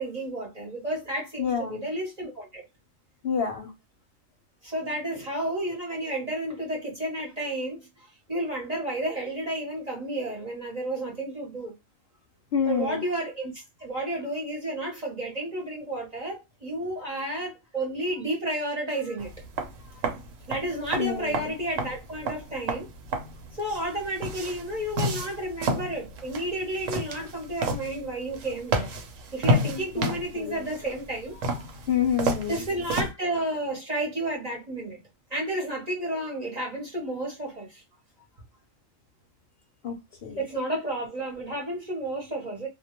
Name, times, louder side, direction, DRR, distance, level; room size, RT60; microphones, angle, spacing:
voice 1, 0.0-2.7 4.6-11.7 12.7-19.4 19.8-20.0 20.5-22.9 23.5-28.9 29.3-31.7 32.5-35.0 35.3-37.8 40.4-42.7, right 1 dB, 40° right, 0.7 m, -31 dB
voice 2, 1.4-1.8 3.2-3.7 12.5-13.0 21.0-21.5 30.0-30.1 30.4-30.7 31.9-32.6 39.8-40.4, left 7 dB, 60° left, 0.7 m, -28 dB
sound 1, 19.2-33.1, right 1 dB, 75° right, 1.0 m, -31 dB
2.2 x 2.1 x 2.8 m
omnidirectional pair, 1.3 m